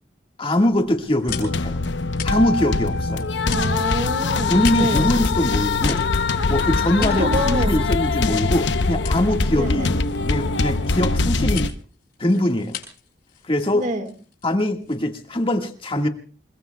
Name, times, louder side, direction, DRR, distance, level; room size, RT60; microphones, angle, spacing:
voice 1, 0.4-1.8 2.2-3.3 4.5-6.1 6.5-9.9 10.3-11.7 12.2-12.8 13.4-13.8 14.4-16.1, left 1 dB, 30° left, 4 dB, 1.8 m, -22 dB
sound 1, 0.7-15.4, left 9 dB, 60° left, 6.8 m, -40 dB
sound 2, 1.3-11.7, left 3 dB, 85° left, 0.8 m, -22 dB
voice 2, 3.5-5.1 7.0-7.8 9.5-9.9 13.7-14.1, right 1 dB, 45° right, 7 dB, 1.9 m, -27 dB
29.5 x 21.0 x 2.3 m, 0.39 s
head